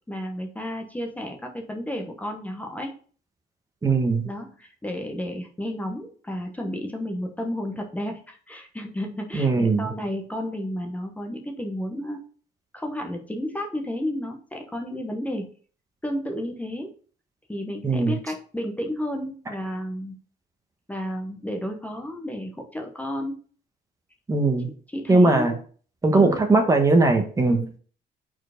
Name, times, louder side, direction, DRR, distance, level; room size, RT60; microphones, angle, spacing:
voice 1, 0.1-3.0 4.2-12.2 12.7-15.5 16.0-16.9 17.5-20.2 20.9-23.4 24.9-25.6 26.1-26.4 27.5-27.7, left 1 dB, 10° left, 3 dB, 1.0 m, -32 dB
voice 2, 3.8-4.3 9.3-9.9 17.8-18.1 24.3-24.7 25.1-25.5 26.0-27.6, right 3 dB, 20° right, 5 dB, 1.0 m, -19 dB
4.6 x 4.5 x 5.0 m, 0.42 s
cardioid pair, 110°, 17 cm